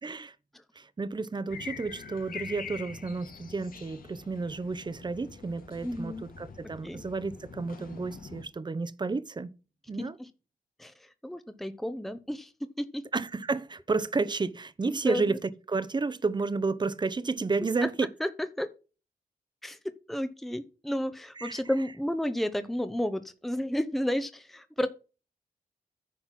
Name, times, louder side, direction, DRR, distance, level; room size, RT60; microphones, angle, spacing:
voice 1, 0.0-0.3 0.8-9.5 9.9-10.2 13.1-17.9 21.4-21.6, right 4 dB, 30° right, 0.8 m, -31 dB
sound 1, 1.5-8.4, left 5 dB, 70° left, 1.6 m, -45 dB
voice 2, 5.8-6.3 6.8-7.0 10.0-10.3 10.8-12.5 12.8-13.0 14.9-15.4 17.8-17.9 18.2-18.3 18.6-18.7 19.6-19.8 20.1-24.9, equal, ahead, 0.8 m, -32 dB
10.0 x 4.3 x 5.9 m
cardioid pair, 80°, 15 cm